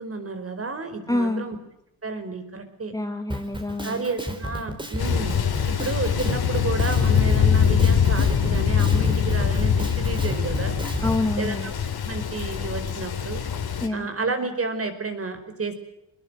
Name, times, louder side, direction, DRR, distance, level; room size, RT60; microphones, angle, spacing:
voice 1, 0.0-1.6 2.0-2.9 3.8-5.3 5.7-10.7 11.4-11.7 12.0-13.4 13.9-15.7, right 3 dB, 30° right, 9 dB, 5.0 m, -31 dB
voice 2, 1.1-1.4 2.9-4.0 11.0-11.7 13.8-14.1, left 2 dB, 5° left, 5 dB, 1.9 m, -26 dB
Drum kit, 3.3-11.2, equal, 10° right, 4.5 m, -32 dB
Thunder, 5.0-13.9, left 7 dB, 55° left, 3.7 m, -23 dB
25.5 x 21.0 x 8.1 m, 0.81 s
cardioid pair, 125°, 46 cm